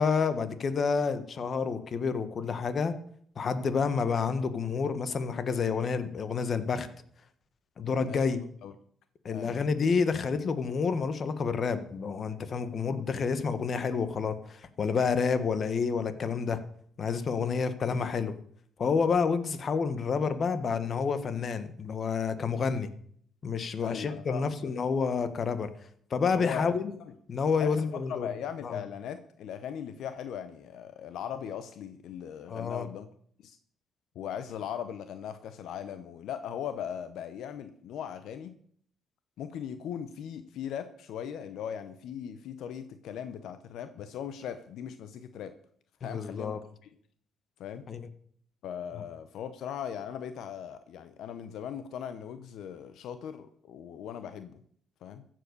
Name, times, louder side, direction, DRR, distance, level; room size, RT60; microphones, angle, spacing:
voice 1, 0.0-2.9 3.4-6.9 7.8-8.4 9.2-16.6 17.0-18.3 18.8-22.9 23.4-25.7 26.1-26.8 27.3-28.3 28.6-28.8 32.5-32.9 46.0-46.6 47.9-48.1, left 5 dB, 50° left, 12 dB, 1.4 m, -29 dB
voice 2, 23.8-24.7 26.3-26.7 27.6-33.1 33.4-33.6 34.1-38.5 39.4-45.5 46.0-46.6 47.6-47.9 48.6-54.5 55.0-55.3, left 8 dB, 80° left, 11 dB, 0.8 m, -39 dB
15.0 x 7.7 x 6.8 m, 0.62 s
cardioid pair, 90°, 0 cm